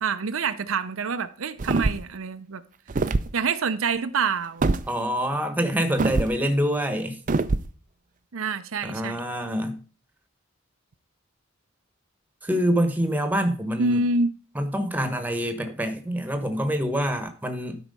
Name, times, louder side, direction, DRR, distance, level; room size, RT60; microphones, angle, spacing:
voice 1, 0.0-2.6 3.3-4.7 5.8-5.9 8.3-9.2 13.8-14.3, right 4 dB, 75° right, 0.6 m, -26 dB
sound 1, 1.6-2.1 2.9-3.3 4.6-4.9 6.0-6.3 7.3-7.7, right 3 dB, 40° right, 0.5 m, -23 dB
voice 2, 4.9-7.2 8.8-9.8 12.4-14.0 14.5-17.8, equal, 10° right, 1.1 m, -26 dB
12.0 x 4.7 x 5.4 m
head